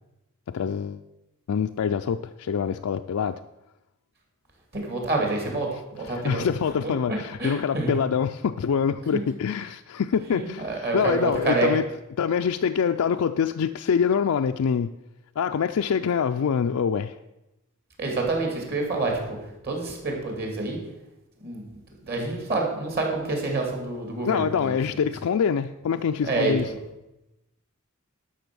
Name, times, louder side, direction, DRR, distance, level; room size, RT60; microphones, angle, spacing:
voice 1, 0.5-1.0 1.5-3.4 6.1-11.9 12.2-14.9 15.4-17.1 24.3-26.7, left 6 dB, 70° left, 7 dB, 0.4 m, -25 dB
voice 2, 4.7-6.5 6.8-8.0 9.1-9.2 10.3-11.7 18.0-19.4 19.6-20.8 21.4-21.7 22.1-24.7 26.2-26.8, right 3 dB, 45° right, 1 dB, 2.8 m, -27 dB
12.0 x 6.1 x 6.2 m, 0.96 s
head